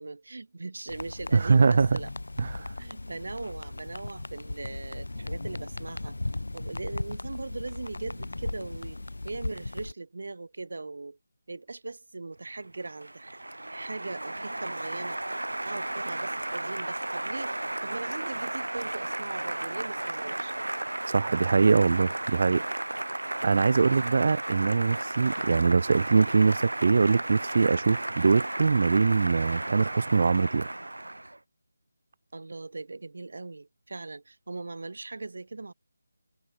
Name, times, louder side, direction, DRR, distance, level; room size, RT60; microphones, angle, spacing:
voice 1, 0.0-2.1 2.8-6.2 6.5-11.2 11.5-15.2 15.6-17.5 17.8-20.5 32.3-35.7, right 3 dB, 65° right, 6.6 m, -39 dB
sound 1, 0.9-9.9, left 2 dB, 80° left, 5.3 m, -37 dB
voice 2, 1.3-2.0 2.4-2.7 21.1-22.6 23.1-30.7, right 4 dB, 50° right, 0.8 m, -23 dB
Applause, 12.5-31.4, right 1 dB, 90° right, 3.0 m, -34 dB
figure-of-eight pair, 160°, 0 cm